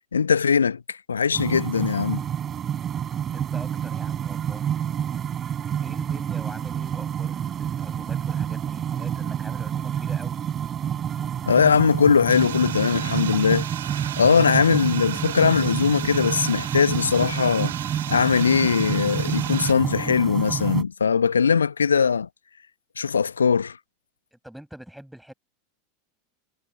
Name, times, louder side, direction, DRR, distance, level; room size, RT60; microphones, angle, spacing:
voice 1, 0.1-2.2 11.5-13.7 14.2-17.7 18.1-22.3 23.0-23.8, left 6 dB, 75° left, 0.9 m, -20 dB
sound 1, 1.3-20.8, right 9 dB, 30° right, 4.0 m, -28 dB
voice 2, 3.3-4.7 5.8-10.4 24.3-25.3, right 1 dB, ahead, 7.1 m, -43 dB
sound 2, 12.3-19.7, right 11 dB, 65° right, 2.2 m, -35 dB
figure-of-eight pair, 85°, 0 cm